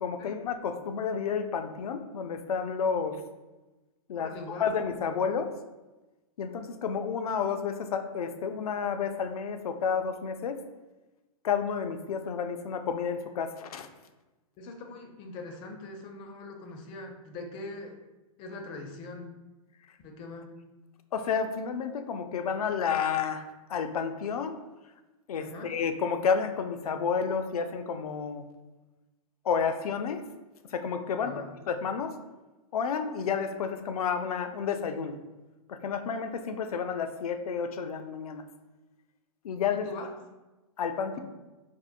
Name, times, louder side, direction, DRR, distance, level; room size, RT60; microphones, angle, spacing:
voice 1, 0.0-3.2 4.1-4.3 4.6-5.5 6.4-10.6 11.4-13.9 21.1-24.5 25.3-28.4 29.4-30.2 30.7-31.3 31.7-32.1 32.7-35.2 35.7-38.4 39.4-39.8 40.8-41.2, left 6 dB, 90° left, 8 dB, 0.4 m, -30 dB
voice 2, 4.1-4.7 14.6-18.0 18.4-19.4 20.0-20.6 25.4-25.7 31.2-31.7 39.7-40.1, left 2 dB, 25° left, 3 dB, 0.4 m, -42 dB
4.3 x 2.0 x 2.4 m, 1.1 s
hypercardioid pair, 135°, 18 cm